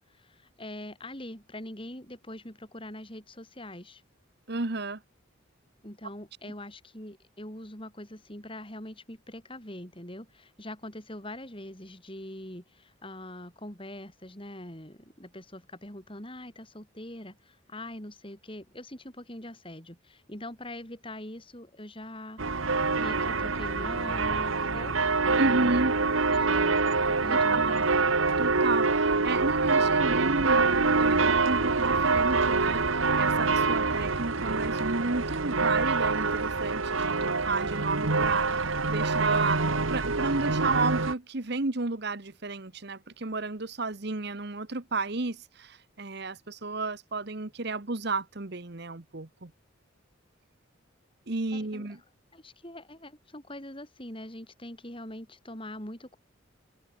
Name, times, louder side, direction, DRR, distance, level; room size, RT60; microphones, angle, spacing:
voice 1, 0.1-4.0 5.8-25.0 25.2-25.8 26.3-28.0 51.5-51.9 52.3-56.2, left 1 dB, 25° left, 5.0 m, -43 dB
voice 2, 4.5-5.0 25.4-25.9 27.3-27.8 28.4-49.5 51.3-52.0, right 3 dB, 50° right, 1.2 m, -32 dB
sound 1, 22.4-41.1, right 4 dB, 80° right, 1.8 m, -25 dB
head